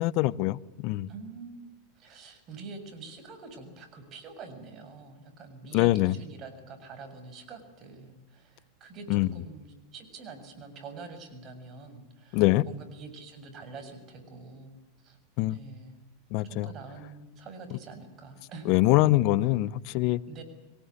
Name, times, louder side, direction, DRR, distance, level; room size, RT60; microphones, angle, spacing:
voice 1, 0.0-1.1 5.7-6.2 9.1-9.3 12.3-12.7 15.4-15.6 16.3-16.7 18.6-20.2, left 17 dB, 55° left, 19 dB, 0.9 m, -24 dB
voice 2, 1.1-1.6 2.0-14.7 15.0-15.2 15.5-16.0 16.4-18.9 20.3-20.4, right 4 dB, 40° right, 7 dB, 7.1 m, -45 dB
24.0 x 18.5 x 9.8 m, 1.1 s
hypercardioid pair, 110°, 0 cm